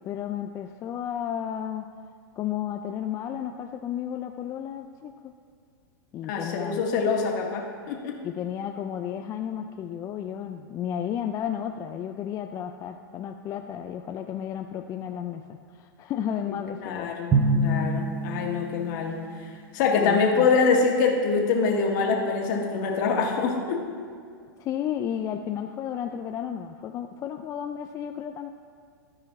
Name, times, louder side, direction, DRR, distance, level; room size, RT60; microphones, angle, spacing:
voice 1, 0.1-1.8 2.4-5.3 6.1-6.9 8.2-17.2 20.0-20.5 24.6-28.5, left 9 dB, 25° left, 5 dB, 0.4 m, -33 dB
voice 2, 6.3-8.2 16.8-19.5 19.7-23.9, left 5 dB, 55° left, 1 dB, 1.6 m, -25 dB
Drum, 17.3-19.0, right 2 dB, 20° right, 0.8 m, -25 dB
13.5 x 4.9 x 4.7 m, 2.2 s
hypercardioid pair, 120°, 12 cm